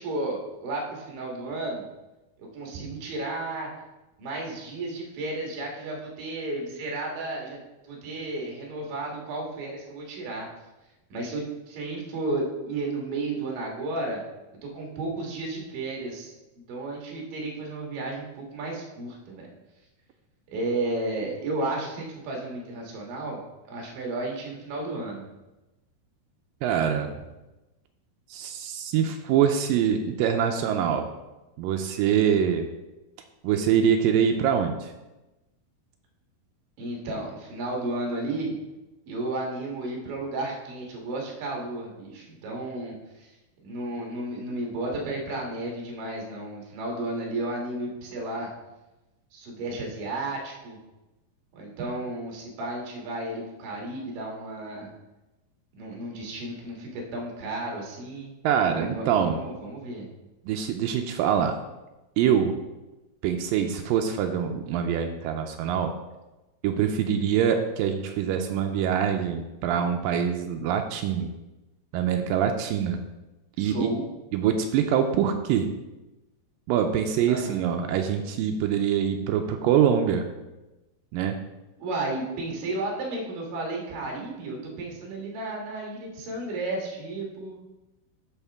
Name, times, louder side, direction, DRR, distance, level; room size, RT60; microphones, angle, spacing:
voice 1, 0.0-1.9 2.4-3.7 4.2-7.6 7.8-10.5 11.1-14.2 14.6-16.3 16.7-19.5 20.5-23.4 23.7-25.3 36.8-38.6 39.1-43.3 43.6-48.5 49.3-50.8 51.5-54.9 55.7-58.4 58.7-60.1 73.6-74.0 77.3-77.7 81.8-87.6, right 2 dB, 65° right, -1 dB, 3.1 m, -33 dB
voice 2, 26.6-27.1 28.3-31.1 31.6-32.7 33.4-34.9 58.4-59.4 60.5-61.6 62.2-62.5 63.2-65.9 66.6-71.3 71.9-73.0 73.6-73.9 74.3-75.7 76.7-80.3 81.1-81.4, right 8 dB, 85° right, 5 dB, 2.0 m, -24 dB
12.5 x 4.4 x 3.5 m, 1.0 s
omnidirectional pair, 4.5 m